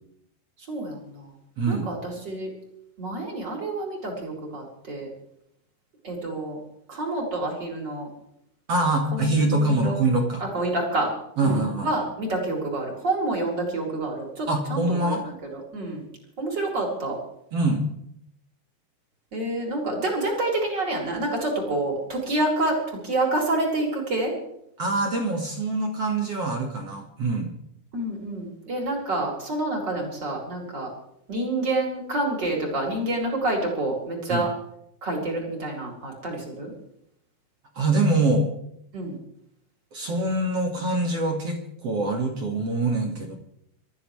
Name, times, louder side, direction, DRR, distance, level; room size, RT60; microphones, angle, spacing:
voice 1, 0.7-1.3 1.7-2.5 3.0-5.1 6.0-6.6 6.9-8.1 9.1-10.0 10.4-11.1 11.4-16.1 16.4-17.2 19.3-24.3 27.9-30.9 31.3-34.5 35.0-36.7 38.9-39.2, right 2 dB, 25° right, -1 dB, 4.2 m, -28 dB
voice 2, 1.6-1.9 8.7-10.4 11.4-11.9 14.5-15.2 17.5-17.8 24.8-27.5 34.3-34.4 37.8-38.5 39.9-43.3, right 2 dB, 50° right, 1 dB, 1.8 m, -24 dB
26.5 x 14.0 x 3.3 m, 0.76 s
omnidirectional pair, 5.7 m